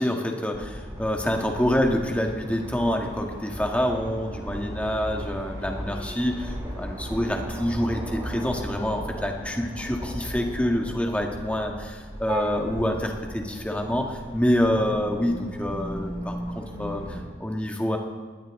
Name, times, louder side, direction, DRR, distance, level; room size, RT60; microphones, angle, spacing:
voice 1, 0.0-18.0, equal, 5° left, 1 dB, 1.7 m, -27 dB
sound 1, 0.5-17.2, equal, 20° right, 4.7 m, -36 dB
20.0 x 18.5 x 3.8 m, 1.5 s
head